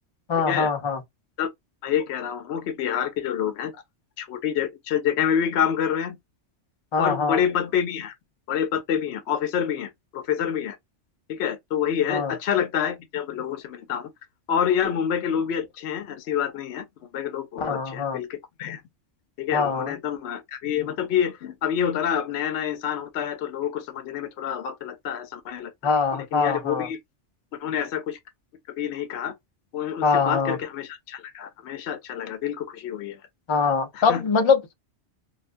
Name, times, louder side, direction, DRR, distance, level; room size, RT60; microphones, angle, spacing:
voice 1, 0.3-1.0 6.9-7.4 12.1-12.3 17.6-18.2 19.5-19.9 25.8-26.9 30.0-30.6 33.5-34.7, left 5 dB, 50° left, 0.3 m, -23 dB
voice 2, 1.8-3.8 4.2-6.2 7.0-8.1 8.5-10.8 11.3-14.1 14.5-16.8 17.1-18.8 19.4-25.9 26.3-27.0 27.6-28.2 28.8-29.3 29.7-33.2 33.9-34.2, left 8 dB, 70° left, 0.8 m, -27 dB
2.5 x 2.2 x 2.4 m
omnidirectional pair, 1.2 m